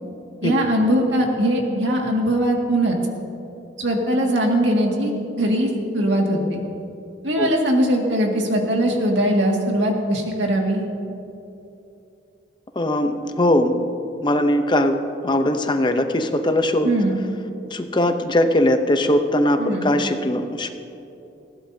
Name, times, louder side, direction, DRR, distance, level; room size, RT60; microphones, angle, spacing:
voice 1, 0.4-3.0 3.8-5.1 5.4-6.6 7.2-10.8 16.8-17.2 19.6-19.9, right 1 dB, 90° right, 0 dB, 2.0 m, -20 dB
voice 2, 12.8-13.8 14.2-15.0 15.2-16.9 17.7-20.7, left 1 dB, 25° left, 7 dB, 0.7 m, -20 dB
19.5 x 16.0 x 2.8 m, 2.8 s
head